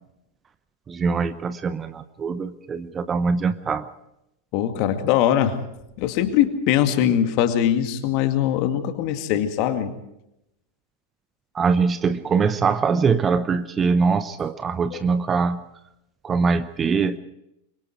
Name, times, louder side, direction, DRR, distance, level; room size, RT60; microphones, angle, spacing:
voice 1, 0.9-3.9 11.5-15.6 16.2-17.2, right 5 dB, 20° right, 13 dB, 0.9 m, -22 dB
voice 2, 4.5-5.6 6.0-9.9 14.9-15.0, left 10 dB, 45° left, 8 dB, 2.1 m, -21 dB
26.0 x 23.0 x 4.6 m, 0.84 s
figure-of-eight pair, 90°, 0 cm